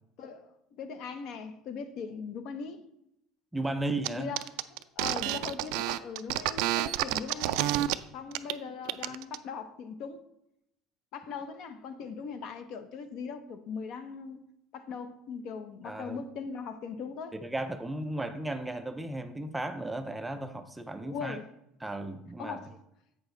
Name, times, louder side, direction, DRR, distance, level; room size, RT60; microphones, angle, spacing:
voice 1, 0.2-2.8 4.1-7.8 8.1-10.2 11.1-14.4 14.7-17.3 21.0-21.5 22.4-22.7, left 5 dB, 55° left, 0.8 m, -40 dB
voice 2, 3.5-4.3 15.8-16.2 17.3-21.4 21.8-22.6, right 2 dB, 5° right, 0.4 m, -35 dB
sound 1, 4.0-4.1 4.4-7.9 8.3-8.5 8.9-9.4, right 15 dB, 75° right, 0.4 m, -29 dB
8.3 x 6.2 x 3.9 m
cardioid pair, 160°, 0 cm